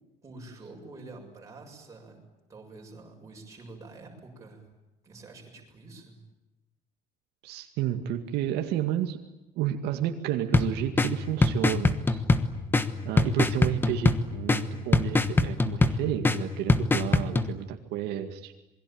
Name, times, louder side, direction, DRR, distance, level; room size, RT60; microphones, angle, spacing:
voice 1, 0.2-2.2 2.5-4.6 5.0-6.2, right 3 dB, 20° right, 1 dB, 6.9 m, -47 dB
voice 2, 7.4-9.2 9.6-12.2 13.0-18.5, right 11 dB, 75° right, 5 dB, 2.1 m, -31 dB
sound 1, 10.5-17.5, left 3 dB, 10° left, 1.2 m, -25 dB
27.5 x 22.5 x 8.9 m, 1.0 s
cardioid pair, 180°, 17 cm